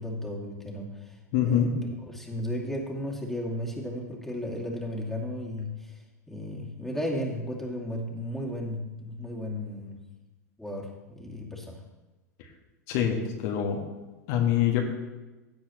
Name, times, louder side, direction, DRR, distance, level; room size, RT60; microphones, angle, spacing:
voice 1, 0.0-1.1 1.4-1.8 2.1-6.0 6.3-10.0 10.6-11.8, left 1 dB, ahead, -3 dB, 2.5 m, -34 dB
voice 2, 1.3-1.7 12.9-13.2 13.4-13.8 14.3-14.8, left 10 dB, 55° left, 1 dB, 1.7 m, -24 dB
16.0 x 8.1 x 3.1 m, 1.1 s
hypercardioid pair, 95°, 9 cm